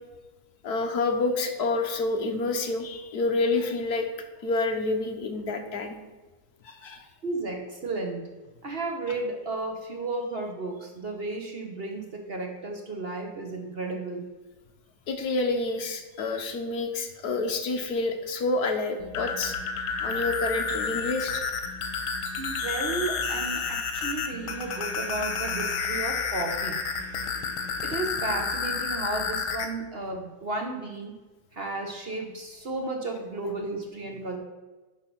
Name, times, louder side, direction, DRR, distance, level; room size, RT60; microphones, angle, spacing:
voice 1, 0.6-4.1 4.4-6.0 6.6-7.0 15.1-19.6 20.0-21.4, left 3 dB, 55° left, 4 dB, 1.4 m, -28 dB
voice 2, 7.2-8.3 8.6-14.3 22.4-26.8 27.8-31.2 31.5-34.4, right 2 dB, 45° right, 2 dB, 0.8 m, -33 dB
sound 1, 19.0-29.7, left 5 dB, 80° left, 1.7 m, -30 dB
10.0 x 4.1 x 6.1 m, 1.2 s
omnidirectional pair, 2.2 m